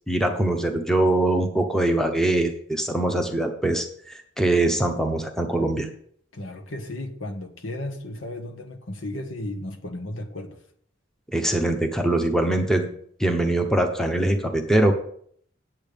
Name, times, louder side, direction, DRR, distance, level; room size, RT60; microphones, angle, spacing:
voice 1, 0.1-5.9 11.3-12.9 13.2-14.9, right 1 dB, ahead, 5 dB, 0.9 m, -22 dB
voice 2, 6.3-10.6, left 1 dB, 75° left, 5 dB, 1.5 m, -34 dB
8.8 x 8.2 x 5.2 m, 0.63 s
head